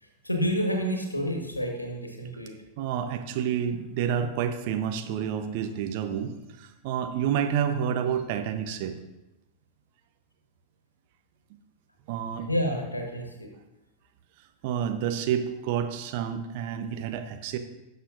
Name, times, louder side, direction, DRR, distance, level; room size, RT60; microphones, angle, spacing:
voice 1, 0.0-2.5 12.5-13.5, equal, 85° left, 2 dB, 1.5 m, -29 dB
voice 2, 2.8-9.0 12.1-12.5 14.6-17.6, right 8 dB, 50° right, 7 dB, 0.9 m, -29 dB
16.5 x 6.7 x 2.6 m, 0.99 s
figure-of-eight pair, 90°, 0 cm